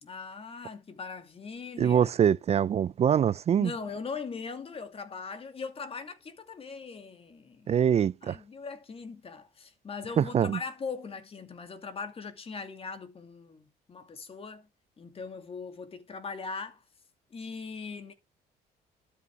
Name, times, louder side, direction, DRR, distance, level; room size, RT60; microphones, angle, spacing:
voice 1, 0.0-2.1 3.6-7.8 8.2-14.7 15.0-16.8 17.3-18.1, left 5 dB, 35° left, 2.4 m, -40 dB
voice 2, 1.8-3.7 7.7-8.4 10.2-10.6, right 8 dB, 40° right, 0.5 m, -24 dB
12.5 x 5.4 x 4.7 m
cardioid pair, 110°, 17 cm